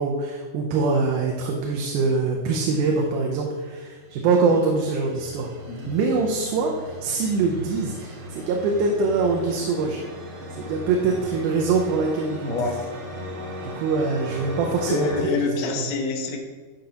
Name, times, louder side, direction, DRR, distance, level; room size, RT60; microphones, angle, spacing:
voice 1, 0.0-5.5 5.9-10.0 10.6-12.7 13.6-15.1 15.5-15.9, right 4 dB, 80° right, 0 dB, 2.2 m, -24 dB
sound 1, 3.7-15.2, equal, 60° right, 1.4 m, -37 dB
voice 2, 12.4-12.8 14.9-16.4, left 3 dB, 85° left, 2 dB, 1.1 m, -26 dB
11.5 x 5.1 x 2.9 m, 1.4 s
omnidirectional pair, 3.7 m